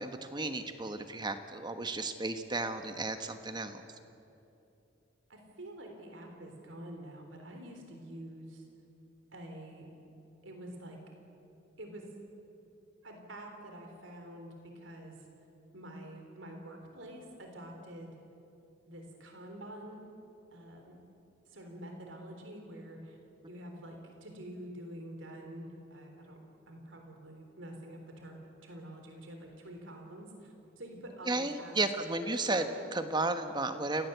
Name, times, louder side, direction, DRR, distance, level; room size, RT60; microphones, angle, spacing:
voice 1, 0.0-3.8 31.3-32.7 32.9-34.1, right 2 dB, 25° right, 8 dB, 1.3 m, -33 dB
voice 2, 5.3-8.7 9.3-9.9 10.4-11.0 11.8-12.1 13.0-15.2 15.7-18.1 18.9-20.0 20.5-20.9 21.5-23.2 23.5-26.4 26.7-32.9, right 1 dB, 80° right, 3 dB, 3.8 m, -47 dB
28.5 x 16.5 x 8.1 m, 2.8 s
head